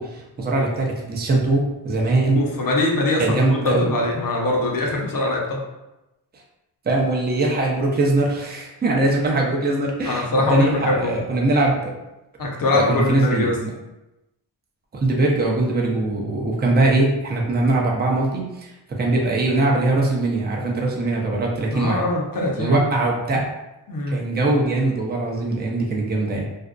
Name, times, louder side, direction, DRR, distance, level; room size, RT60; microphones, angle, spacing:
voice 1, 0.0-2.4 3.2-3.9 6.8-11.9 12.7-13.7 14.9-18.7 19.0-22.0 22.6-23.4 24.1-26.5, right 2 dB, 20° right, -1 dB, 0.6 m, -21 dB
voice 2, 2.3-5.6 10.0-11.1 12.4-13.6 21.7-22.9 23.3-23.4 23.9-24.2, left 2 dB, 45° left, -1 dB, 0.8 m, -22 dB
2.6 x 2.1 x 2.4 m, 0.96 s
supercardioid pair, 50°, 48 cm